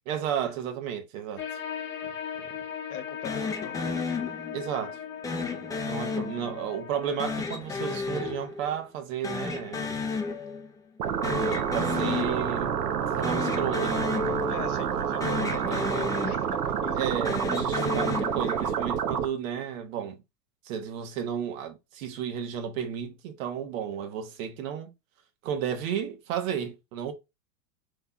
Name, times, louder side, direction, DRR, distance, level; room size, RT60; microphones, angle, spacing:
voice 1, 0.1-1.4 2.4-2.6 4.5-5.0 5.3-10.1 11.4-12.8 13.1-14.4 15.4-15.8 17.0-20.2 20.6-24.9 25.4-27.1, right 8 dB, 55° right, 1.3 m, -33 dB
sound 1, 1.4-7.4, left 8 dB, 25° left, 1.1 m, -38 dB
voice 2, 2.9-3.9 14.5-17.1, left 9 dB, 70° left, 1.1 m, -42 dB
sound 2, 3.2-4.8 5.2-6.8 7.2-9.0 9.2-10.8 11.0-12.8 13.2-15.0 15.2-16.8 17.2-18.9, left 4 dB, 10° left, 0.6 m, -33 dB
sound 3, 11.0-19.3, right 8 dB, 80° right, 0.9 m, -28 dB
5.4 x 3.4 x 2.3 m
hypercardioid pair, 110°, 47 cm